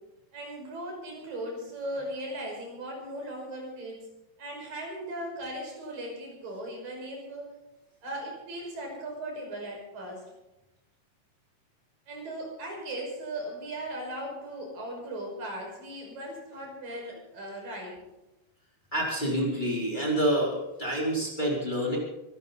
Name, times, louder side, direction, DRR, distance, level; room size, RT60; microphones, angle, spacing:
voice 1, 0.3-4.0 4.4-7.5 8.0-10.2 12.1-18.0, right 1 dB, 85° right, 0 dB, 7.4 m, -38 dB
voice 2, 18.9-22.0, right 1 dB, 15° left, -3 dB, 4.3 m, -27 dB
24.5 x 14.0 x 4.1 m, 0.97 s
omnidirectional pair, 3.8 m